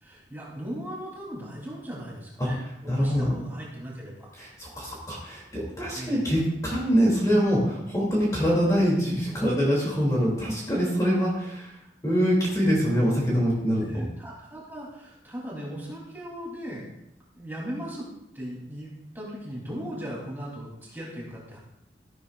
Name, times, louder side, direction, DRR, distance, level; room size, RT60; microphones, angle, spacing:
voice 1, 0.0-4.3 5.9-6.2 13.8-16.8 17.4-18.1 18.3-21.6, equal, 10° right, -4 dB, 3.1 m, -38 dB
voice 2, 2.9-3.3 4.4-11.7 12.0-14.0, equal, 20° left, -4 dB, 2.5 m, -24 dB
14.0 x 12.0 x 2.4 m, 0.82 s
head